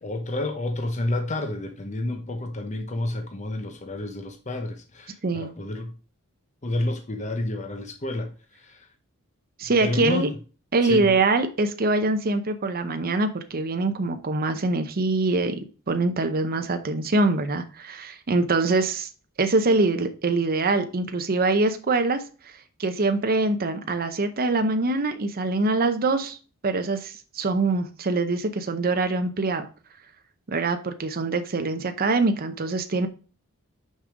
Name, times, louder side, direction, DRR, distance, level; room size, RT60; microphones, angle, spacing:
voice 1, 0.0-5.9 6.6-8.9 9.8-10.3 10.8-11.1, left 1 dB, 35° left, 0.9 m, -30 dB
voice 2, 5.2-5.5 9.6-10.3 10.7-19.1 19.4-22.2 22.8-26.4 26.6-29.7 30.5-33.1, right 3 dB, 45° right, 0.7 m, -24 dB
6.3 x 5.2 x 5.0 m
head